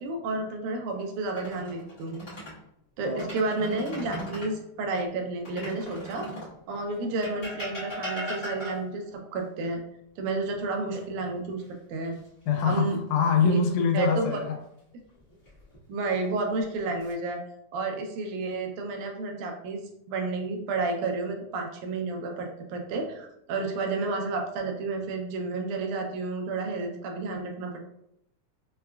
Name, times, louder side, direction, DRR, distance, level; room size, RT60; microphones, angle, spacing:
voice 1, 0.0-2.2 3.0-6.3 6.7-9.8 10.2-11.6 11.9-12.2 12.7-13.0 13.4-13.6 13.9-14.4 15.9-17.4 17.7-19.8 20.1-27.8, right 3 dB, 80° right, 3 dB, 2.0 m, -31 dB
sound 1, 1.2-2.6 3.0-4.6 5.4-6.6 7.2-9.0 10.9-11.6 12.0-12.3 15.2-15.8 16.5-17.1, equal, 45° left, 0.6 m, -39 dB
voice 2, 12.5-14.6, left 5 dB, 85° left, 4 dB, 2.0 m, -24 dB
5.6 x 2.2 x 2.2 m, 0.78 s
omnidirectional pair, 3.6 m